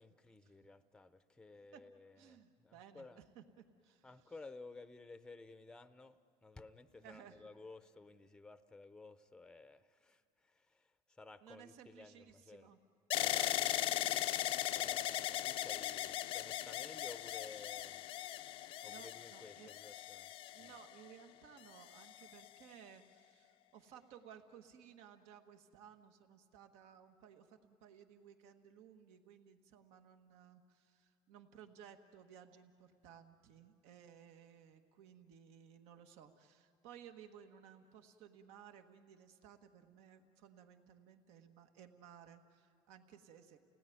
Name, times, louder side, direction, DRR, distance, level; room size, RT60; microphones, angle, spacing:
voice 1, 0.0-3.2 4.0-12.7 13.2-14.3 14.7-18.1 18.8-20.3 20.6-20.7, left 3 dB, 5° left, 12 dB, 0.6 m, -55 dB
voice 2, 1.5-1.9 2.2-4.3 6.9-7.4 11.4-12.8 18.8-19.7 20.5-43.6, right 8 dB, 75° right, 6 dB, 1.5 m, -59 dB
sound 1, 13.1-21.1 21.8-22.5, left 14 dB, 55° left, 0.5 m, -38 dB
29.5 x 18.0 x 9.3 m, 2.8 s
cardioid pair, 135°, 11 cm